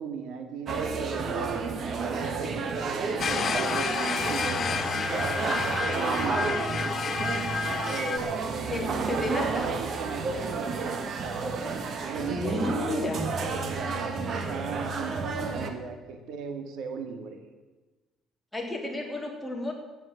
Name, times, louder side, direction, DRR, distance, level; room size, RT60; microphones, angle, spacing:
voice 1, 0.0-3.9 4.3-5.2 5.5-6.9 7.8-11.8 12.1-17.4, right 5 dB, 80° right, 6 dB, 2.1 m, -37 dB
sound 1, 0.7-15.7, right 4 dB, 45° right, 1.7 m, -31 dB
sound 2, 3.2-8.2, left 6 dB, 40° left, 0.8 m, -30 dB
voice 2, 8.7-9.7 12.3-13.3 18.5-19.7, left 2 dB, 5° left, 0 dB, 3.1 m, -32 dB
13.0 x 9.4 x 8.6 m, 1.2 s
cardioid pair, 125°, 0 cm